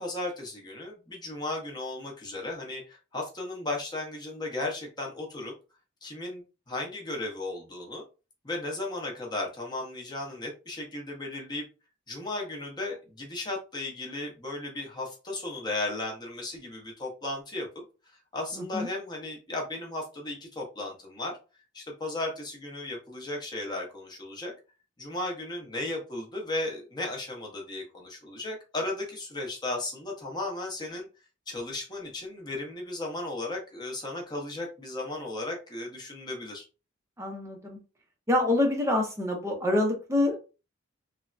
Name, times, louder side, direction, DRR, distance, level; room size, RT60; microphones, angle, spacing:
voice 1, 0.0-5.5 6.0-8.0 8.4-11.6 12.1-17.8 18.3-21.4 21.7-24.5 25.0-31.1 31.5-36.6, left 2 dB, 20° left, 0 dB, 0.7 m, -35 dB
voice 2, 18.6-18.9 37.2-37.8 38.3-40.5, left 1 dB, 15° right, 2 dB, 0.5 m, -26 dB
3.3 x 2.1 x 2.4 m, 0.31 s
head